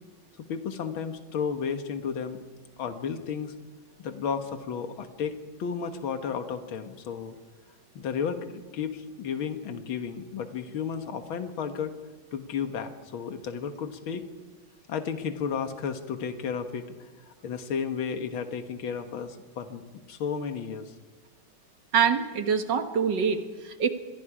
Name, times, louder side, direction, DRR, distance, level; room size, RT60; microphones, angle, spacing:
voice 1, 0.5-2.4 2.8-3.5 4.0-7.4 8.0-11.9 12.3-14.2 14.9-19.8 20.1-20.9, left 6 dB, 80° left, 7 dB, 2.2 m, -33 dB
voice 2, 21.9-23.9, right 6 dB, 60° right, 7 dB, 2.0 m, -25 dB
26.0 x 21.5 x 4.9 m, 1.4 s
omnidirectional pair, 2.2 m